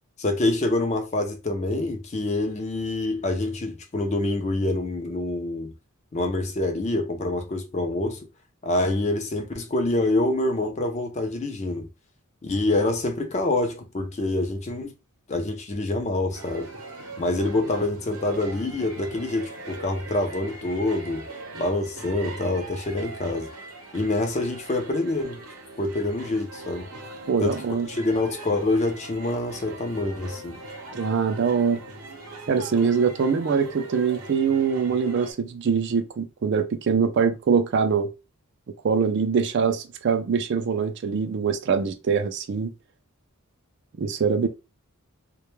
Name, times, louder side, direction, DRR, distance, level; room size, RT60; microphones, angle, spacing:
voice 1, 0.2-5.7 6.1-8.3 8.6-11.9 12.4-14.9 15.3-16.7 17.2-21.3 21.6-23.5 23.9-25.4 25.8-26.9 27.4-27.6 27.9-30.6, left 2 dB, 30° left, 0.4 m, -26 dB
sound 1, 16.3-35.3, right 2 dB, 75° right, 0.7 m, -41 dB
voice 2, 27.3-27.9 31.0-31.8 32.5-38.1 38.8-42.7 44.0-44.5, right 6 dB, 50° right, 0.3 m, -23 dB
2.2 x 2.1 x 3.0 m
head